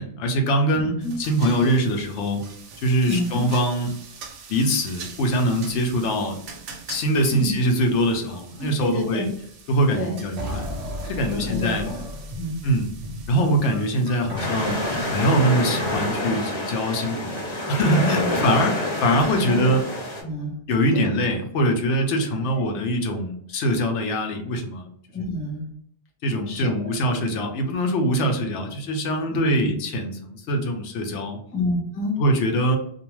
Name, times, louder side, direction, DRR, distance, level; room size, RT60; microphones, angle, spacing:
voice 1, 0.0-2.4 2.8-3.9 4.5-6.4 6.9-9.3 9.7-10.6 11.0-11.9 12.6-12.9 13.3-17.4 17.7-19.8 20.7-24.9 26.2-31.4 32.2-32.8, equal, 85° left, 4 dB, 0.9 m, -23 dB
voice 2, 0.7-1.2 3.1-3.5 7.3-7.5 8.3-9.3 9.9-10.2 11.3-12.0 12.4-12.6 16.0-16.1 18.0-18.3 19.5-19.7 20.2-20.6 20.9-21.1 22.5-22.6 25.1-25.7 26.5-26.9 29.3-29.7 31.5-32.2, left 1 dB, 15° left, 0 dB, 0.4 m, -29 dB
sound 1, 1.0-15.4, right 5 dB, 85° right, 0.9 m, -44 dB
sound 2, 10.4-16.2, left 1 dB, 50° right, 0.5 m, -34 dB
sound 3, 14.4-20.2, left 1 dB, 40° left, 0.9 m, -27 dB
2.5 x 2.3 x 3.0 m, 0.66 s
omnidirectional pair, 1.2 m